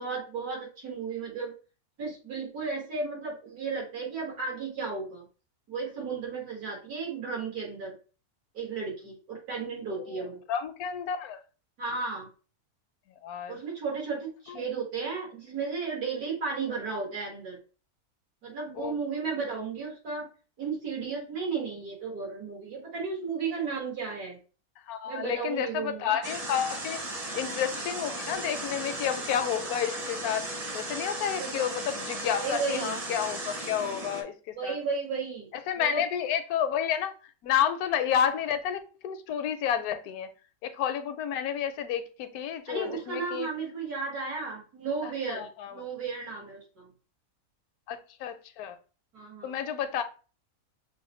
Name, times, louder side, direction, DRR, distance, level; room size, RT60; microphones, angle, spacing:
voice 1, 0.0-1.5 2.0-5.2 5.7-7.9 8.5-10.4 11.8-12.3 13.5-17.6 18.4-20.3 20.6-24.4 25.0-26.2 31.4-31.6 32.4-33.0 34.6-35.5 35.8-36.0 42.7-46.9 49.1-49.6, right 4 dB, 85° right, 2.3 m, -34 dB
voice 2, 9.9-11.4 13.2-13.6 14.5-14.6 18.8-19.0 24.9-27.0 27.3-30.5 30.7-34.8 35.7-37.1 37.4-40.3 40.6-43.5 45.0-45.8 47.9-48.8 49.4-50.0, left 9 dB, 80° left, 1.1 m, -30 dB
sound 1, 26.2-34.2, right 1 dB, 35° right, 0.6 m, -36 dB
6.1 x 2.1 x 3.1 m
omnidirectional pair, 1.6 m